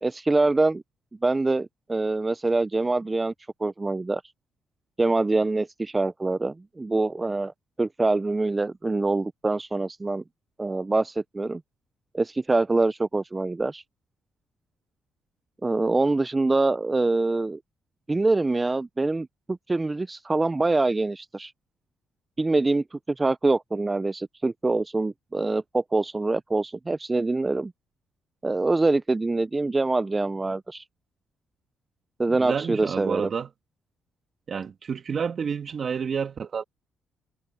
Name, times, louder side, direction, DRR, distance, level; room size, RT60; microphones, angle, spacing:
voice 1, 0.0-0.8 1.2-3.3 3.6-4.2 5.0-7.5 7.8-10.2 10.6-11.6 12.1-13.8 15.6-17.6 18.1-21.5 22.4-27.7 28.4-30.8 32.2-33.3, right 2 dB, 20° right, 0.4 m, -25 dB
voice 2, 32.4-33.5 34.5-36.6, right 6 dB, 50° right, 2.3 m, -29 dB
cardioid pair, 90°, 0 cm